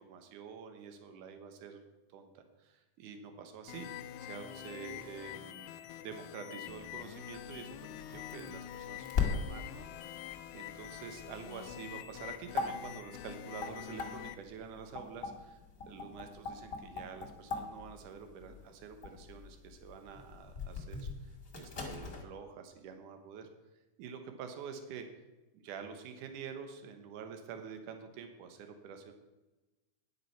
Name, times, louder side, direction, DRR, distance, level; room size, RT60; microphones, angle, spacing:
voice 1, 0.0-1.8 2.1-3.9 4.2-5.7 6.0-9.9 10.2-23.5 24.0-25.1 25.5-29.1, right 6 dB, 70° right, 6 dB, 2.6 m, -47 dB
sound 1, 3.7-14.3, left 12 dB, 80° left, 1.8 m, -46 dB
sound 2, 7.3-22.2, left 5 dB, 30° left, 1.6 m, -41 dB
10.0 x 7.6 x 5.8 m, 1.1 s
omnidirectional pair, 3.9 m